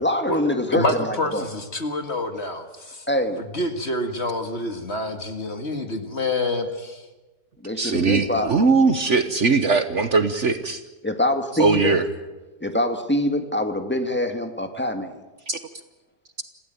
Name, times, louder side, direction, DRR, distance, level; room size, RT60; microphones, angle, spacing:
voice 1, 0.0-1.4 3.1-3.5 7.6-8.5 11.0-12.0 12.6-15.2, left 1 dB, 5° left, 6 dB, 1.8 m, -24 dB
voice 2, 0.7-3.1 3.5-7.1, left 2 dB, 40° left, 6 dB, 2.3 m, -27 dB
voice 3, 7.8-10.8 11.6-12.0 15.5-15.6, right 4 dB, 50° right, 9 dB, 1.3 m, -20 dB
26.5 x 16.0 x 9.2 m, 1.2 s
omnidirectional pair, 1.7 m